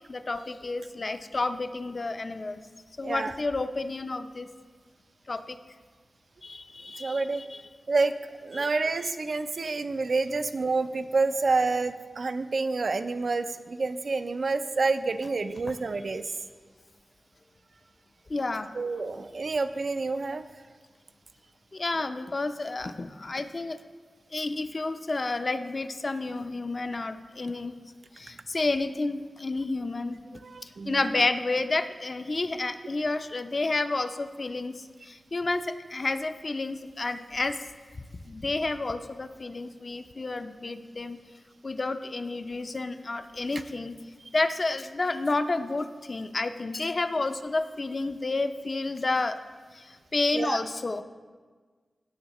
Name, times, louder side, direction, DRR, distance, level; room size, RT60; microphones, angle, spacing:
voice 1, 0.1-2.6 3.0-4.5 5.3-5.6 6.4-7.6 8.5-8.7 9.7-9.8 18.3-18.7 21.7-23.8 24.3-27.7 28.2-30.2 30.6-37.6 38.3-41.2 41.6-43.9 44.3-49.4 49.7-51.0, left 3 dB, 50° left, 9 dB, 0.5 m, -30 dB
voice 2, 3.0-3.3 7.0-7.4 7.9-8.1 8.4-16.2 18.7-20.4 30.4-31.1 50.3-50.6, right 3 dB, 65° right, 9 dB, 0.5 m, -28 dB
17.0 x 6.3 x 3.0 m, 1.5 s
cardioid pair, 55°, 0 cm